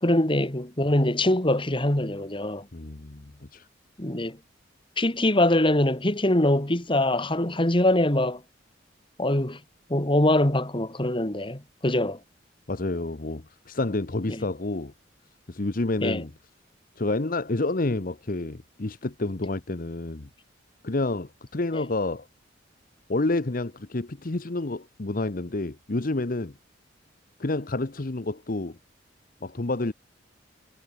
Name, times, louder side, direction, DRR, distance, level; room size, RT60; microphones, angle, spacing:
voice 1, 0.0-2.7 4.0-4.4 5.0-8.4 9.2-9.6 9.9-12.2 14.3-14.4 16.0-16.2 21.7-21.8, left 1 dB, 25° left, 2.4 m, -23 dB
voice 2, 2.7-3.7 12.7-14.9 15.5-16.3 17.0-20.3 20.8-22.3 23.1-26.5 27.4-28.8 29.4-29.9, left 2 dB, 45° left, 1.0 m, -29 dB
head